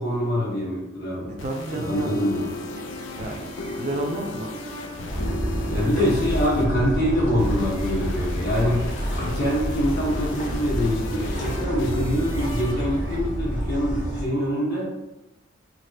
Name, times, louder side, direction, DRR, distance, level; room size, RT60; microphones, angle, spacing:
voice 1, 0.0-1.3 1.7-2.5 5.7-8.9 9.2-14.8, equal, 60° left, -6 dB, 1.2 m, -24 dB
sound 1, 1.2-14.0, left 2 dB, 85° left, 0.4 m, -36 dB
voice 2, 1.3-2.2 3.2-3.5 3.8-4.5 5.7-5.9, right 2 dB, 40° right, 3 dB, 0.4 m, -31 dB
sound 2, 1.9-13.2, right 2 dB, 90° right, 0.6 m, -41 dB
sound 3, 5.1-14.2, equal, 40° left, 0.8 m, -29 dB
3.2 x 2.4 x 2.6 m, 0.94 s
head